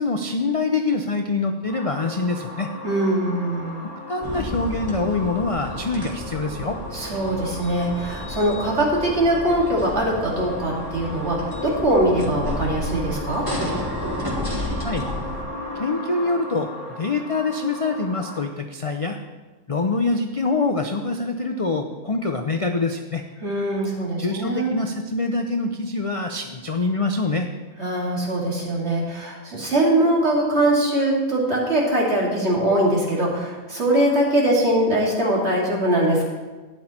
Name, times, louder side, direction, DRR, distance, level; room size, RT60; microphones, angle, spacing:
voice 1, 0.0-2.7 3.8-6.8 14.8-15.1 15.8-16.7 17.0-19.2 19.7-23.2 24.2-27.5, left 3 dB, 45° left, 5 dB, 0.4 m, -25 dB
sound 1, 1.7-18.4, left 1 dB, 30° right, 3.3 m, -37 dB
voice 2, 2.8-3.8 6.9-13.4 23.4-24.7 27.8-36.3, right 1 dB, 50° right, -4 dB, 2.8 m, -22 dB
sound 2, 4.2-15.4, left 1 dB, 15° right, 2.1 m, -32 dB
12.0 x 9.3 x 4.4 m, 1.3 s
omnidirectional pair, 1.5 m